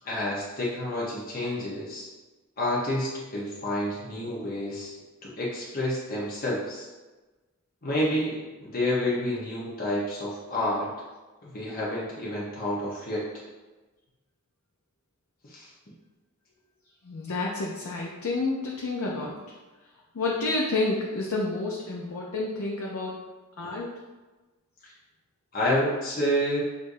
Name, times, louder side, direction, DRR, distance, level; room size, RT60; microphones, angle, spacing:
voice 1, 0.0-2.1 2.6-4.9 5.2-6.9 7.8-10.9 11.4-13.2 15.4-15.7 23.6-23.7 24.8-24.9 25.5-26.6, left 1 dB, 40° left, -6 dB, 0.9 m, -29 dB
voice 2, 17.0-19.4 20.1-23.1 23.6-23.9, left 2 dB, 75° left, -3 dB, 0.6 m, -29 dB
6.3 x 2.6 x 2.6 m, 1.2 s
head